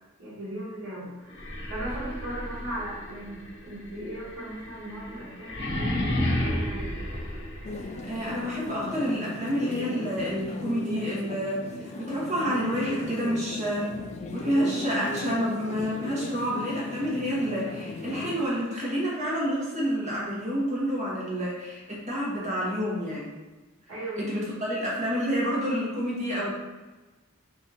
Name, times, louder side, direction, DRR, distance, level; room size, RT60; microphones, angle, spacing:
voice 1, 0.2-6.9 23.9-24.3, right 1 dB, 65° right, -9 dB, 1.3 m, -37 dB
sound 1, 1.3-8.2, left 1 dB, 60° left, 1.0 m, -32 dB
sound 2, 7.6-18.5, left 2 dB, 30° left, 0.3 m, -37 dB
voice 2, 8.1-13.9 14.3-23.3 24.2-26.5, equal, 35° right, -5 dB, 1.2 m, -29 dB
3.7 x 2.8 x 4.1 m, 1.2 s
head